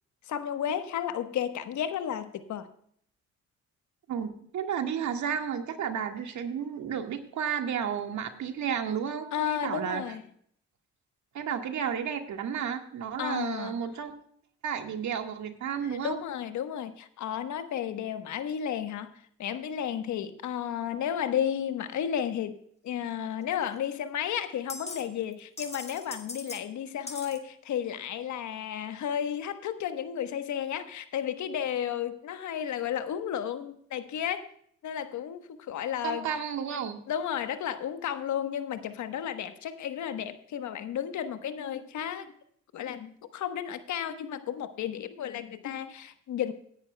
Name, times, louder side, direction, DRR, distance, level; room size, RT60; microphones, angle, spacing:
voice 1, 0.3-2.7 9.3-10.2 13.2-13.7 15.8-22.6 22.8-34.5 34.8-36.3 37.1-42.3 42.7-46.5, left 9 dB, 70° left, 10 dB, 1.2 m, -33 dB
voice 2, 4.1-10.0 11.3-14.1 14.6-16.2 36.0-37.0, right 8 dB, 70° right, 5 dB, 1.8 m, -32 dB
sound 1, 23.7-23.8 24.7-25.1 25.3-26.6 27.1-27.4, left 3 dB, 20° left, 1.8 m, -40 dB
17.0 x 10.5 x 2.2 m, 0.64 s
cardioid pair, 90°, 30 cm